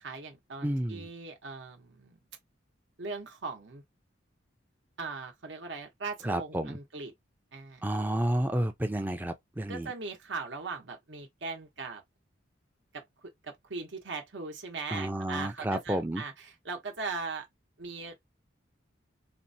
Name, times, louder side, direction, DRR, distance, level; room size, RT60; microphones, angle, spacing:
voice 1, 0.0-2.2 3.0-3.8 5.0-7.1 7.5-7.8 9.7-12.0 13.2-17.4 17.8-18.2, right 4 dB, 65° right, 0.8 m, -39 dB
voice 2, 0.6-1.1 6.2-6.8 7.8-9.9 14.9-16.2, right 1 dB, 10° right, 0.4 m, -31 dB
4.2 x 2.1 x 2.6 m
head